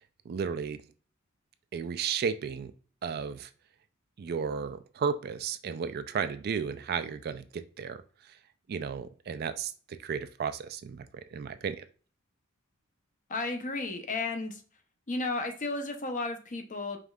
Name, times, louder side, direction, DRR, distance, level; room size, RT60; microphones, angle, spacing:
voice 1, 0.3-0.8 1.7-2.7 3.0-3.5 4.2-8.0 8.3-8.4 8.7-11.9, right 6 dB, 50° right, 11 dB, 0.3 m, -34 dB
voice 2, 13.3-14.6 15.1-17.0, left 3 dB, 40° left, 5 dB, 0.7 m, -33 dB
5.0 x 3.2 x 2.3 m, 0.40 s
head